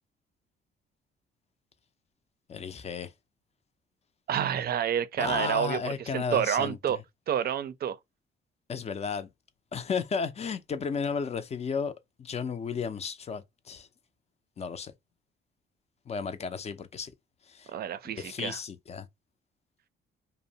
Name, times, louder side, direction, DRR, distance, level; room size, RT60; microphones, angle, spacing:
voice 1, 2.5-3.1 5.2-7.0 8.7-9.3 9.7-11.9 12.2-13.9 14.6-14.9 16.1-17.1 17.5-17.7 18.2-19.1, left 6 dB, 35° left, 0.4 m, -33 dB
voice 2, 4.3-7.0 7.3-8.0 17.7-18.6, right 9 dB, 50° right, 0.4 m, -29 dB
2.6 x 2.0 x 2.7 m
cardioid pair, 90°, 20 cm